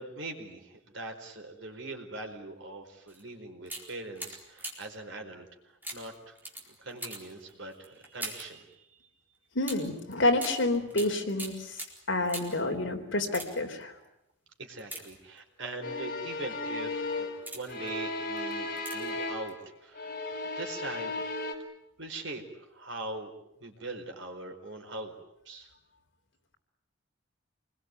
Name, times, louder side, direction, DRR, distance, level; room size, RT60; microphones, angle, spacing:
voice 1, 0.0-6.3 6.8-9.0 14.6-20.2 20.6-21.2 22.0-23.3 23.6-25.2 25.4-25.7, right 2 dB, 65° right, 4 dB, 4.7 m, -42 dB
sound 1, 3.1-3.2 3.6-5.0 5.8-8.6 9.6-12.7 13.2-13.8 14.8-15.6 16.3-16.5 17.1-17.9 18.8-19.2 19.5-19.6, right 1 dB, 10° right, 4.4 m, -43 dB
voice 2, 9.5-11.5 12.1-13.9, left 2 dB, 65° left, 4 dB, 4.0 m, -28 dB
sound 2, 15.8-19.6 19.9-21.5, left 2 dB, 50° left, 4.0 m, -35 dB
27.5 x 21.0 x 9.5 m, 0.81 s
head